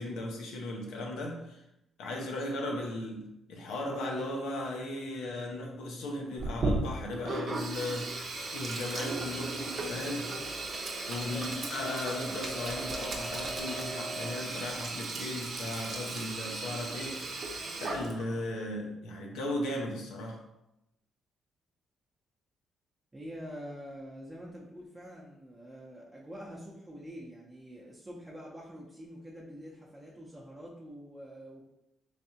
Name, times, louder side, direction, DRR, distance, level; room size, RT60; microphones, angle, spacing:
voice 1, 0.0-1.6 2.0-10.3 11.1-20.4, left 1 dB, 85° left, 1 dB, 0.7 m, -37 dB
Sink (filling or washing), 6.4-18.4, right 3 dB, 50° right, 0.7 m, -36 dB
sound 1, 8.3-14.6, equal, 20° left, 0.3 m, -45 dB
voice 2, 23.1-31.6, equal, 15° right, -5 dB, 0.7 m, -46 dB
3.5 x 3.3 x 2.8 m, 0.86 s
cardioid pair, 90°, 0 cm